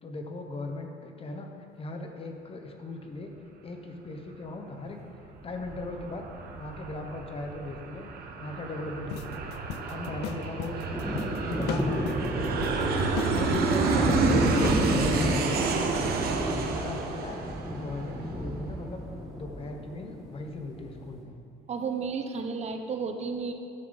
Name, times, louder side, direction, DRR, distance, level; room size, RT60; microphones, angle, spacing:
voice 1, 0.0-1.5 1.8-3.3 3.6-5.0 5.4-6.3 6.6-9.4 9.9-11.2 11.4-12.9 13.2-14.2 14.5-16.0 16.8-19.0 19.3-21.3, left 2 dB, 35° left, 3 dB, 1.2 m, -38 dB
Aircraft, 5.2-18.4, right 4 dB, 65° right, 1.1 m, -29 dB
sound 1, 9.1-15.0, left 10 dB, 80° left, 0.5 m, -38 dB
sound 2, 10.9-21.2, equal, ahead, 2.2 m, -33 dB
voice 2, 21.7-23.5, right 5 dB, 40° right, 5 dB, 0.9 m, -32 dB
12.0 x 7.3 x 4.1 m, 2.5 s
cardioid pair, 110°, 17 cm